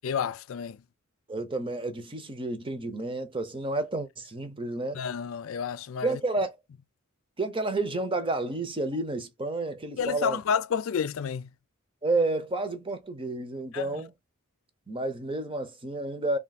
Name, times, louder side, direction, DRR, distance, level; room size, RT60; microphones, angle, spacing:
voice 1, 0.0-0.8 4.9-6.2 10.0-11.5 13.7-14.0, left 7 dB, 70° left, 0.4 m, -30 dB
voice 2, 1.3-5.0 6.0-6.6 7.4-10.4 12.0-14.1 14.9-16.4, right 2 dB, 25° right, 0.8 m, -30 dB
3.5 x 2.3 x 4.1 m
head